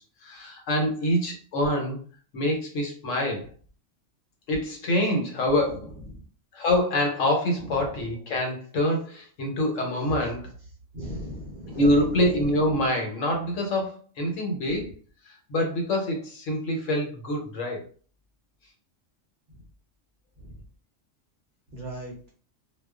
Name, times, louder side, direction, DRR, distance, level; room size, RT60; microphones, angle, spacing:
voice 1, 0.0-2.0 2.3-3.5 4.5-5.9 6.5-10.5 11.7-14.9 15.5-17.8, left 1 dB, 80° left, 2 dB, 1.1 m, -26 dB
voice 2, 10.9-12.5 20.4-20.6 21.7-22.3, equal, 45° right, -2 dB, 0.8 m, -37 dB
2.3 x 2.3 x 2.3 m, 0.40 s
omnidirectional pair, 1.3 m